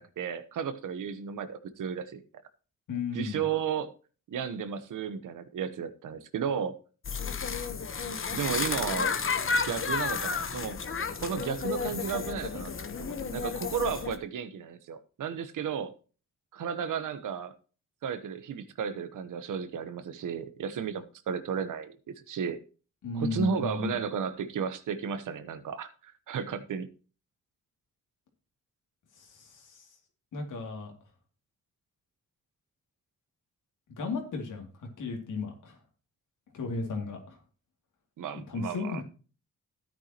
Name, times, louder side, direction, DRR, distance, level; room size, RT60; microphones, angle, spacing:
voice 1, 0.0-2.2 3.1-3.9 4.3-6.7 8.3-9.1 9.6-10.8 11.2-12.7 13.0-15.9 16.5-17.5 18.0-22.0 22.3-22.6 23.1-26.9 38.2-39.0, right 7 dB, 85° right, 1.1 m, -33 dB
voice 2, 2.9-3.5 23.0-24.0 29.2-29.9 30.3-30.9 34.0-34.7 35.0-35.8 36.5-37.4 38.5-39.0, left 4 dB, 85° left, 2.7 m, -34 dB
sound 1, 7.0-14.2, left 5 dB, 45° left, 1.1 m, -32 dB
13.0 x 9.1 x 3.0 m
cardioid pair, 80°, 30 cm